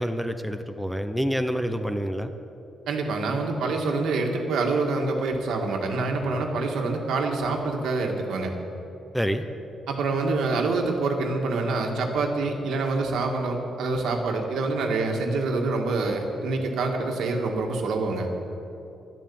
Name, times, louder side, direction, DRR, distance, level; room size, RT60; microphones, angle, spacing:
voice 1, 0.0-2.3 9.1-9.4, equal, ahead, 8 dB, 0.6 m, -27 dB
voice 2, 2.9-8.5 9.9-18.3, right 3 dB, 85° right, 2 dB, 1.9 m, -26 dB
11.5 x 11.0 x 8.6 m, 2.8 s
cardioid pair, 155°, 0 cm